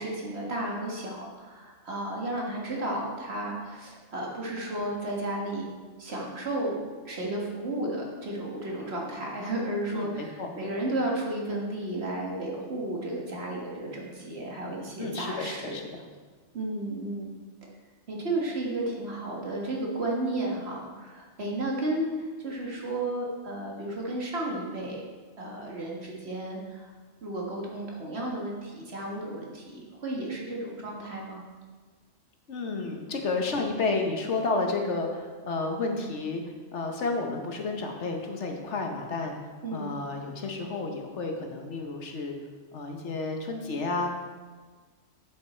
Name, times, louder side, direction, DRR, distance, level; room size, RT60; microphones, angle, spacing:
voice 1, 0.0-5.7 6.0-15.8 16.5-17.3 18.1-25.0 25.4-26.9 27.2-31.4 39.6-39.9, right 1 dB, 55° right, -2 dB, 1.8 m, -33 dB
voice 2, 9.9-10.5 15.0-16.0 32.5-36.4 36.7-39.3 39.7-42.3 42.7-44.1, left 3 dB, 65° left, 3 dB, 1.3 m, -31 dB
8.0 x 7.8 x 4.3 m, 1.4 s
omnidirectional pair, 1.3 m